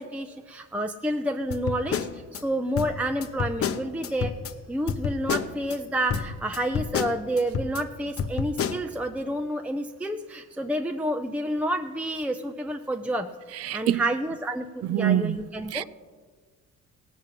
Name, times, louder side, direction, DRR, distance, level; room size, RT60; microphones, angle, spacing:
voice 1, 0.0-4.3 4.7-13.3 13.7-15.8, right 1 dB, 5° right, 0.5 m, -29 dB
sound 1, 1.5-2.4 2.8-4.5 4.9-5.8 6.1-7.8 8.2-8.8, left 6 dB, 50° left, 0.8 m, -29 dB
voice 2, 13.7-14.0 14.9-15.4 15.7-15.8, right 12 dB, 55° right, 0.4 m, -24 dB
17.0 x 6.2 x 7.4 m
cardioid pair, 90°, 30 cm